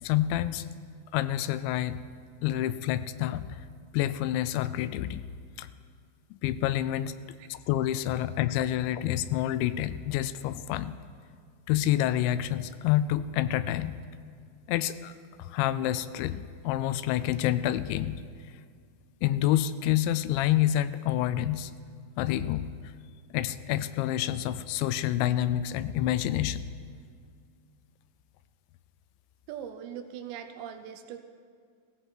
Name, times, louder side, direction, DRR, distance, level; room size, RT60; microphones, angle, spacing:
voice 1, 0.0-0.7 1.1-2.0 2.4-3.6 3.9-5.2 5.6-5.7 6.4-7.2 7.5-11.0 11.7-14.0 14.7-15.1 15.4-18.2 19.2-21.7 22.2-22.7 23.3-26.6, left 12 dB, 85° left, 14 dB, 2.8 m, -28 dB
voice 2, 29.5-31.2, right 9 dB, 80° right, 7 dB, 2.8 m, -40 dB
16.5 x 16.5 x 4.5 m, 2.2 s
omnidirectional pair, 5.3 m